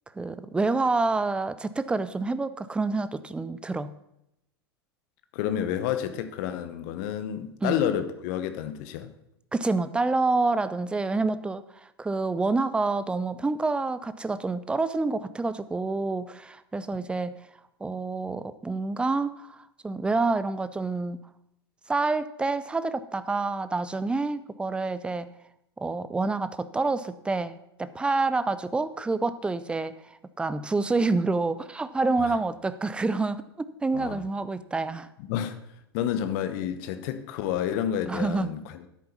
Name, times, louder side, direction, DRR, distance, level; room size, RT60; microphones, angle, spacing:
voice 1, 0.2-3.9 7.6-7.8 9.5-11.6 12.0-17.3 17.8-21.2 21.9-25.3 25.8-30.0 30.4-35.1 38.1-38.5, right 3 dB, 5° right, 14 dB, 0.5 m, -27 dB
voice 2, 5.3-9.1 16.9-17.0 32.2-32.4 33.9-34.2 35.2-35.6 35.9-38.9, left 10 dB, 45° left, 11 dB, 1.0 m, -30 dB
10.5 x 8.5 x 5.5 m, 0.82 s
figure-of-eight pair, 90°, 14 cm